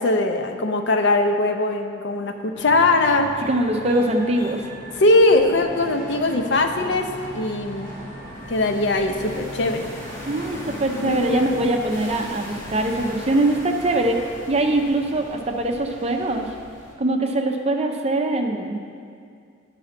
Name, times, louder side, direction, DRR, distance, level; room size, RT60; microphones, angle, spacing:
voice 1, 0.0-3.3 5.0-7.9 8.5-9.8 11.0-11.7, left 2 dB, 60° left, 5 dB, 0.6 m, -20 dB
sound 1, 2.5-16.9, equal, 40° left, 1.6 m, -37 dB
voice 2, 3.5-4.6 10.2-16.5 17.0-18.8, right 1 dB, 30° right, 3 dB, 0.5 m, -22 dB
9.7 x 4.1 x 5.8 m, 2.2 s
head